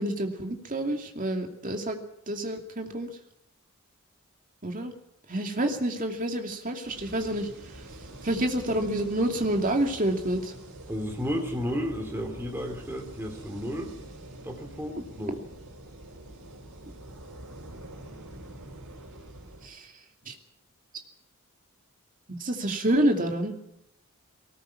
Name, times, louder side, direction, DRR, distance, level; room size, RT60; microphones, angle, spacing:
voice 1, 0.0-2.0 2.3-3.1 4.6-4.9 5.3-7.5 8.2-10.5 19.6-19.9 20.3-20.4 22.3-23.6, right 1 dB, 40° right, 4 dB, 2.7 m, -28 dB
sound 1, 6.8-19.7, right 1 dB, 90° right, 4.7 m, -45 dB
voice 2, 10.9-13.9 14.4-15.4, equal, 10° right, 3 dB, 3.0 m, -32 dB
20.0 x 18.5 x 7.3 m, 0.79 s
head